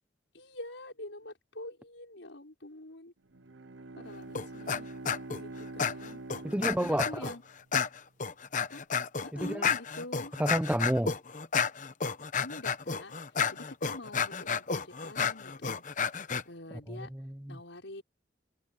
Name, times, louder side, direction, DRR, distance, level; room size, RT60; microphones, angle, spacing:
voice 1, 0.3-3.1 3.9-4.9 5.4-6.2 6.8-7.4 8.6-8.8 9.2-10.3 12.4-13.1 13.5-15.8 16.4-17.1 17.5-18.0, left 1 dB, 80° left, 6.0 m, -45 dB
Bowed string instrument, 3.3-7.6, right 2 dB, 85° right, 0.9 m, -45 dB
sound 1, 4.4-4.8 5.1-5.4 5.8-7.4 7.7-16.4, left 6 dB, 45° left, 0.9 m, -31 dB
voice 2, 6.4-7.3 9.3-9.7 10.4-11.1 17.5-17.6, right 1 dB, 5° right, 0.7 m, -29 dB
head